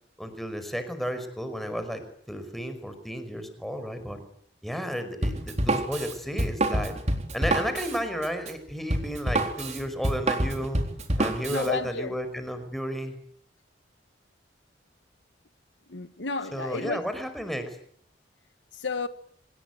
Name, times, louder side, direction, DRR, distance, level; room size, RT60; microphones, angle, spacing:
voice 1, 0.2-2.0 2.3-4.2 4.6-6.9 7.3-10.8 11.2-13.2 16.5-17.8, equal, ahead, 5.3 m, -32 dB
Drum kit, 5.2-11.7, right 1 dB, 40° right, 3.9 m, -27 dB
voice 2, 11.5-12.1 15.9-17.0 18.7-19.1, left 3 dB, 70° left, 1.4 m, -32 dB
26.0 x 20.5 x 9.4 m
head